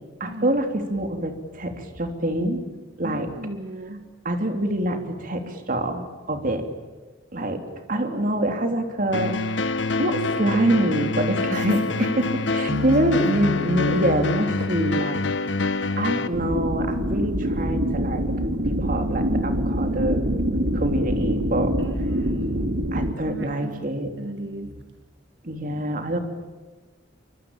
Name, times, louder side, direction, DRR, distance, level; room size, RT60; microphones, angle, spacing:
voice 1, 0.2-2.6 3.0-3.3 4.2-6.7 7.3-9.3 9.7-15.2 15.5-18.2 18.6-20.3 20.7-21.7 22.9-24.1 25.4-26.2, right 1 dB, 45° right, 6 dB, 3.2 m, -25 dB
voice 2, 3.0-4.1 11.5-11.9 12.7-13.3 21.8-22.7 23.2-23.8 24.2-24.8, right 1 dB, 65° right, 5 dB, 2.3 m, -34 dB
sound 1, 9.1-16.3, left 3 dB, 80° left, 1.3 m, -26 dB
sound 2, 16.3-23.1, equal, 85° right, 2.5 m, -25 dB
25.0 x 24.5 x 8.9 m, 1.3 s
head